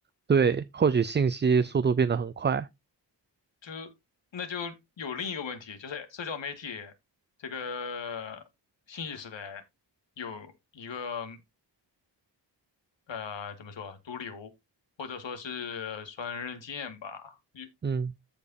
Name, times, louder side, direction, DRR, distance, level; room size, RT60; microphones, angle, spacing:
voice 1, 0.3-2.7 17.8-18.1, right 6 dB, 25° right, 0.4 m, -24 dB
voice 2, 4.3-6.9 7.4-8.4 8.9-9.6 10.2-11.4 13.1-14.5 15.0-17.7, left 6 dB, 85° left, 2.1 m, -38 dB
14.5 x 5.2 x 2.7 m
wide cardioid pair, 150°, 44 cm